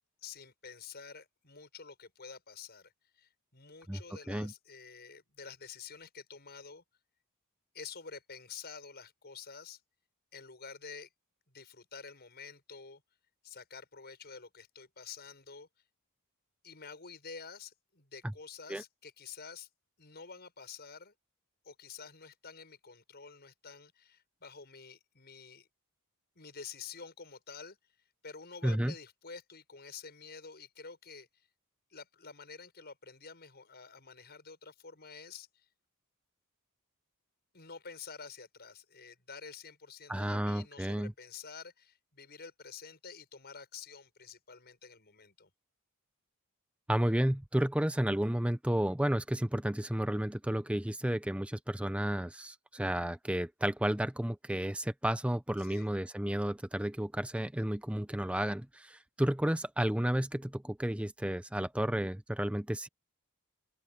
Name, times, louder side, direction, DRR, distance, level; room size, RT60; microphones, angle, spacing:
voice 1, 0.2-6.8 7.7-9.8 10.3-11.1 11.5-13.0 13.4-15.7 16.6-19.7 20.0-21.1 21.6-25.7 26.3-27.8 28.2-31.3 31.9-35.6 37.5-45.5 55.6-55.9, left 5 dB, 45° left, 6.7 m, -49 dB
voice 2, 28.6-28.9 40.1-41.1 46.9-62.9, right 1 dB, 5° right, 0.7 m, -32 dB
open air
head